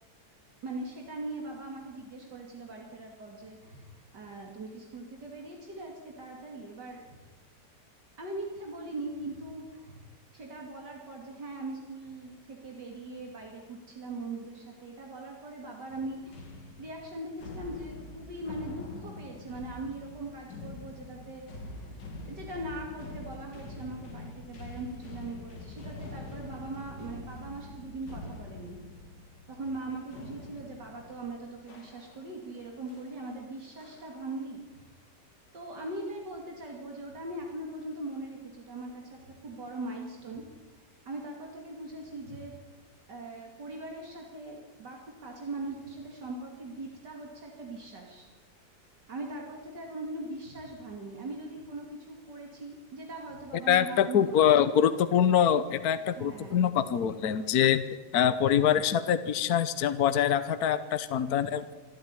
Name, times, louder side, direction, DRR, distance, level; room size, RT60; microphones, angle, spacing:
voice 1, 0.6-7.2 8.2-10.0 10.3-16.5 16.8-21.9 22.3-28.8 29.5-34.9 35.5-40.4 41.0-42.5 43.1-48.3 49.1-54.6 56.0-56.7, right 2 dB, 75° right, 0 dB, 3.3 m, -40 dB
sound 1, 15.9-32.5 32.9-33.2 33.8-34.3, left 2 dB, 90° left, 2.9 m, -45 dB
voice 2, 53.7-57.8 58.1-61.7, left 9 dB, 65° left, 12 dB, 1.4 m, -24 dB
26.5 x 13.0 x 9.8 m, 1.3 s
omnidirectional pair, 1.8 m